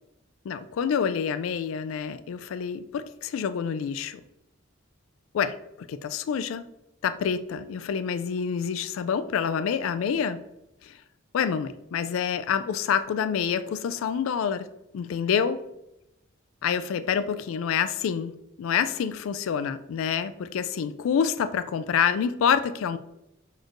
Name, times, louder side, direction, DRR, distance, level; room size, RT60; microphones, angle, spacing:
voice 1, 0.4-4.2 5.3-5.6 5.9-6.7 7.0-10.4 10.8-11.0 11.3-14.7 14.9-15.6 16.6-18.3 18.6-23.0, left 7 dB, 80° left, 12 dB, 0.3 m, -27 dB
6.2 x 3.1 x 2.5 m, 0.87 s
head